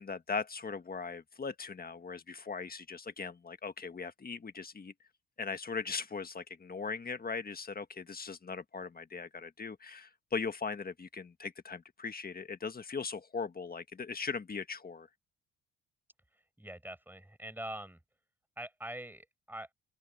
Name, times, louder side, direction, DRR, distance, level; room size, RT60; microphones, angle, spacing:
voice 1, 0.0-4.9 5.4-15.1, left 5 dB, 30° left, 1.6 m, -39 dB
voice 2, 16.3-18.0 18.6-19.7, right 1 dB, 5° right, 7.5 m, -44 dB
open air
cardioid pair, 90°, 30 cm